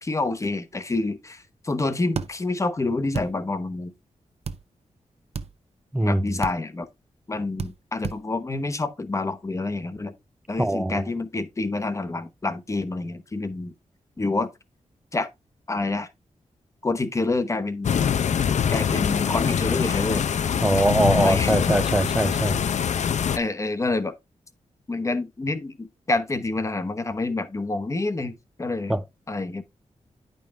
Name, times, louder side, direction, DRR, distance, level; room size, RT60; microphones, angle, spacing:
voice 1, 0.0-3.9 6.0-6.9 7.3-10.1 10.5-13.7 14.2-14.5 15.1-15.3 15.7-16.1 16.8-17.9 18.7-20.4 21.2-21.6 23.3-24.2 24.9-29.0 29.3-29.6, left 2 dB, 25° left, 0.9 m, -27 dB
sound 1, 2.2-2.3 3.1-3.3 4.5-4.6 5.3-5.5 6.4-6.6 7.6-7.7 8.0-8.2, right 6 dB, 55° right, 0.7 m, -30 dB
voice 2, 5.9-6.4 10.6-11.0 20.6-22.6 28.9-29.0, right 1 dB, 5° right, 0.5 m, -22 dB
sound 2, 17.8-23.4, left 8 dB, 70° left, 0.6 m, -24 dB
10.5 x 5.4 x 3.5 m
wide cardioid pair, 165°, 12 cm